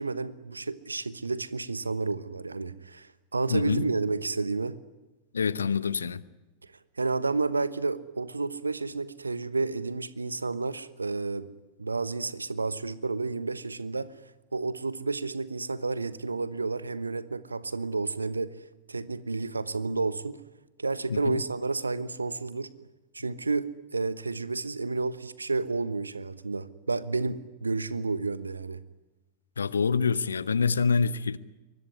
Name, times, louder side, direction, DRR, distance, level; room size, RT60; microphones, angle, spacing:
voice 1, 0.0-4.8 7.0-11.5 11.8-14.1 14.5-18.5 18.9-20.4 20.8-22.9 23.1-23.7 23.9-28.8, right 3 dB, 80° right, 1.1 m, -31 dB
voice 2, 3.5-3.8 5.3-6.2 21.1-21.4 29.6-31.4, left 5 dB, 70° left, 0.9 m, -26 dB
24.0 x 20.5 x 9.7 m
figure-of-eight pair, 90°, 0 cm